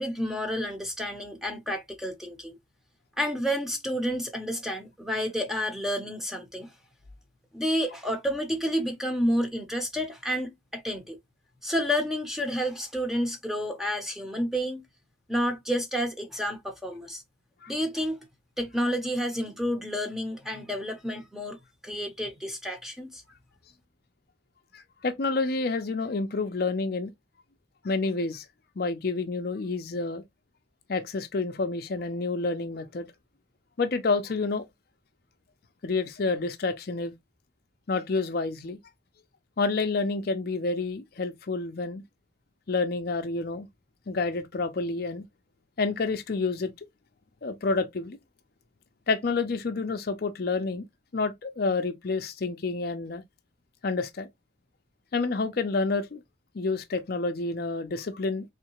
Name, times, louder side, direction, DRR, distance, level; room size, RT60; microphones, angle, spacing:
voice 1, 0.0-2.5 3.2-6.7 7.5-11.2 11.6-14.8 15.3-17.2 17.7-18.2 18.6-21.6 21.8-23.2, equal, ahead, 0.8 m, -30 dB
voice 2, 24.7-27.1 27.8-28.5 28.8-30.2 30.9-33.1 33.8-34.6 35.8-37.1 37.9-38.8 39.6-42.0 42.7-43.7 44.1-45.2 45.8-46.7 47.4-48.2 49.1-50.8 51.1-53.2 53.8-54.3 55.1-56.2 56.5-58.4, left 3 dB, 50° left, 0.5 m, -29 dB
3.6 x 3.2 x 3.0 m
head